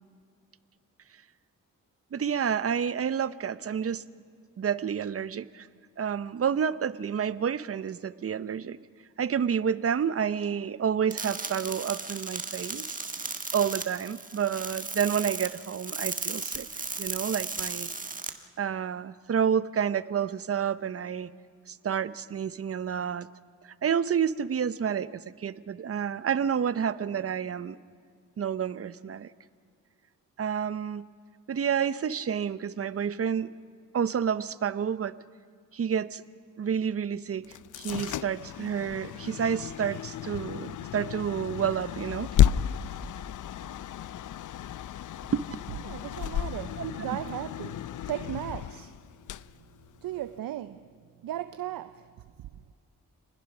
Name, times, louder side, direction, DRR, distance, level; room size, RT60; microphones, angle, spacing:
voice 1, 2.1-4.0 4.6-5.7 6.0-8.8 9.2-12.8 13.5-16.7 17.0-17.9 18.6-21.3 21.7-23.3 23.6-27.8 28.4-29.3 30.4-31.0 31.5-33.5 33.9-35.2 35.7-36.2 36.6-42.3 45.3-45.4 46.8-47.2, right 7 dB, 45° right, 0.7 m, -29 dB
sound 1, 11.1-18.3, right 3 dB, 25° right, 1.5 m, -35 dB
sound 2, 37.4-50.4, left 10 dB, 65° left, 0.5 m, -32 dB
voice 2, 45.8-49.0 50.0-50.9 51.2-52.7, right 12 dB, 90° right, 0.6 m, -37 dB
27.5 x 20.5 x 6.1 m
cardioid pair, 80°, 33 cm